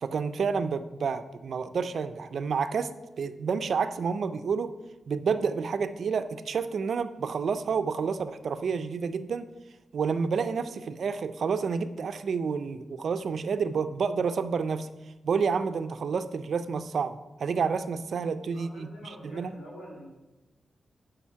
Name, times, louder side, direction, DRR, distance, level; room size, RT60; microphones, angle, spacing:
voice 1, 0.0-4.7 5.1-9.5 9.9-14.9 15.2-18.9 19.2-19.5, right 5 dB, 60° right, 11 dB, 0.4 m, -29 dB
voice 2, 18.5-20.1, equal, 70° left, -3 dB, 3.1 m, -46 dB
7.2 x 5.0 x 5.7 m, 1.1 s
wide cardioid pair, 170°, 0 cm